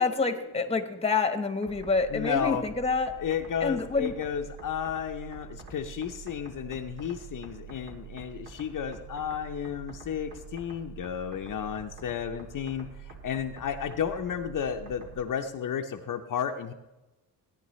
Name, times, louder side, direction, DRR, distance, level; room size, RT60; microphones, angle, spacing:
voice 1, 0.0-3.1 3.6-4.1, left 4 dB, 15° left, 7 dB, 1.1 m, -27 dB
sound 1, 1.6-15.3, right 6 dB, 60° right, 3.0 m, -46 dB
voice 2, 2.1-2.6 3.2-16.7, left 8 dB, 55° left, 4 dB, 0.7 m, -32 dB
17.0 x 9.8 x 3.1 m, 1.0 s
cardioid pair, 105°, 38 cm